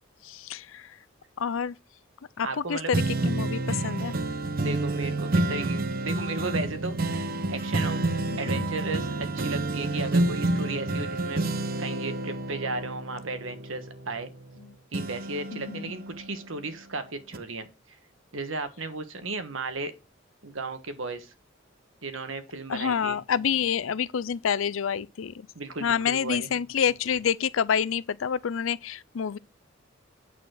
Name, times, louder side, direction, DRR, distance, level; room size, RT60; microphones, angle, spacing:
voice 1, 0.2-1.0 1.4-1.8 2.4-4.1 8.3-8.7 14.6-14.7 15.5-15.9 22.7-25.5 25.8-29.4, left 7 dB, 85° left, 0.5 m, -28 dB
voice 2, 2.4-2.9 4.6-8.0 8.4-11.4 11.8-14.3 14.9-18.0 18.3-19.9 20.4-21.3 22.0-23.2 25.5-26.5, right 3 dB, 80° right, 1.4 m, -35 dB
sound 1, 2.9-14.6 14.9-16.8 17.3-17.4, right 2 dB, 45° right, 0.7 m, -29 dB
9.2 x 4.3 x 6.3 m
head